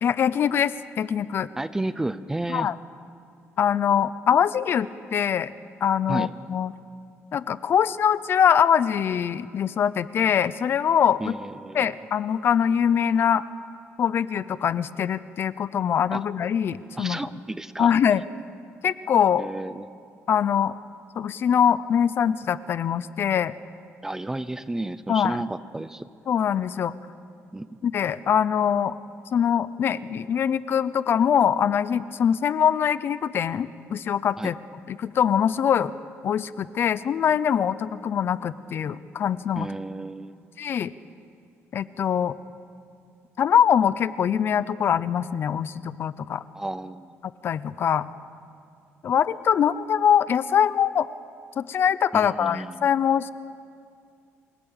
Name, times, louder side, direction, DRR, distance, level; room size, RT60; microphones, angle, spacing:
voice 1, 0.0-1.5 2.5-2.7 3.6-5.5 5.8-6.7 7.3-11.3 11.7-13.4 14.0-17.2 17.8-18.2 18.8-19.5 20.3-20.8 21.2-23.5 25.1-25.4 26.3-26.9 27.8-29.0 29.3-34.5 34.9-35.9 36.2-39.7 40.6-40.9 41.7-42.4 43.4-46.4 47.4-48.1 49.0-51.1 51.6-53.3, left 8 dB, 45° left, 16 dB, 0.7 m, -23 dB
voice 2, 1.6-2.7 6.1-6.3 11.2-11.9 16.1-16.2 16.9-17.9 19.4-19.9 24.0-26.1 27.5-27.7 34.4-34.5 39.6-40.4 46.5-47.1 52.1-52.8, right 2 dB, 10° right, 14 dB, 0.6 m, -32 dB
28.0 x 19.0 x 9.0 m, 2.3 s
cardioid pair, 150°, 5 cm